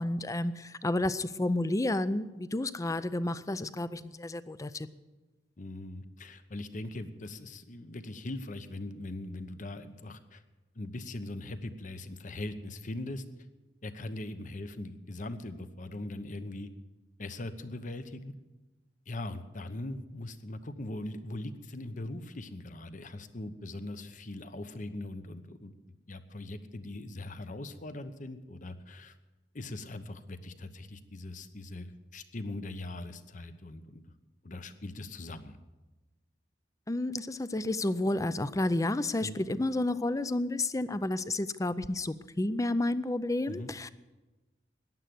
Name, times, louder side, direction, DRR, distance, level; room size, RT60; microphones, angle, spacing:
voice 1, 0.0-4.9 36.9-43.9, left 2 dB, 20° left, 15 dB, 0.5 m, -31 dB
voice 2, 5.6-10.4 10.7-13.2 13.8-16.7 17.2-18.3 19.1-25.7 26.1-29.1 29.5-34.0 34.4-35.6 39.2-39.4 43.5-43.7, left 2 dB, 45° left, 11 dB, 0.9 m, -40 dB
15.0 x 10.5 x 7.8 m, 1.2 s
head